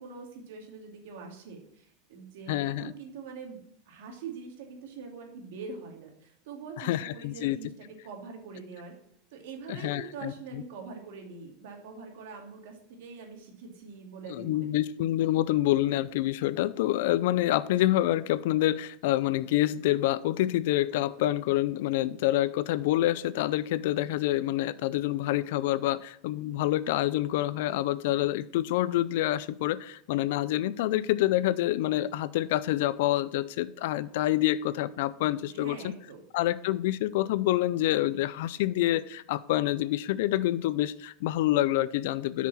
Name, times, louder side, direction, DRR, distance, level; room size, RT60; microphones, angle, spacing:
voice 1, 0.0-3.6 3.9-8.9 9.3-14.7 35.5-36.2, right 5 dB, 70° right, 2 dB, 2.4 m, -44 dB
voice 2, 2.5-2.9 6.8-7.6 9.7-10.6 14.3-35.8 36.3-42.5, left 14 dB, 65° left, 17 dB, 0.4 m, -27 dB
8.5 x 6.1 x 4.1 m, 0.73 s
supercardioid pair, 160°, 0 cm